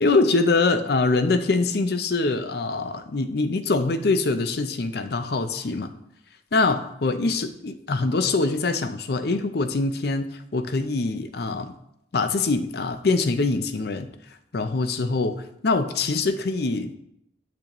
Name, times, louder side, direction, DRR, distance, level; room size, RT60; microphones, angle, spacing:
voice 1, 0.0-5.9 6.5-11.7 12.1-14.1 14.5-16.9, left 3 dB, 60° left, 10 dB, 0.5 m, -24 dB
8.5 x 6.1 x 3.0 m, 0.78 s
head